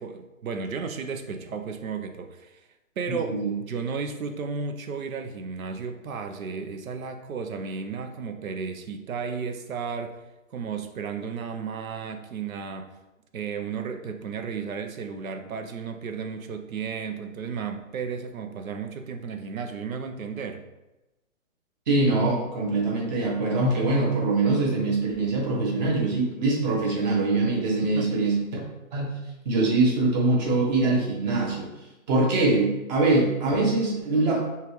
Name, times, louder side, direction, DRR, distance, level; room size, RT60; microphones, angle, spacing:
voice 1, 0.0-2.6 3.0-10.2 10.5-12.9 13.3-20.7 27.8-28.1, right 5 dB, 75° right, 7 dB, 0.8 m, -33 dB
voice 2, 3.1-3.6 21.9-28.6 28.9-29.2 29.4-31.7 32.1-34.4, right 2 dB, 30° right, -2 dB, 1.1 m, -23 dB
5.7 x 2.4 x 3.1 m, 1.0 s
hypercardioid pair, 150°, 41 cm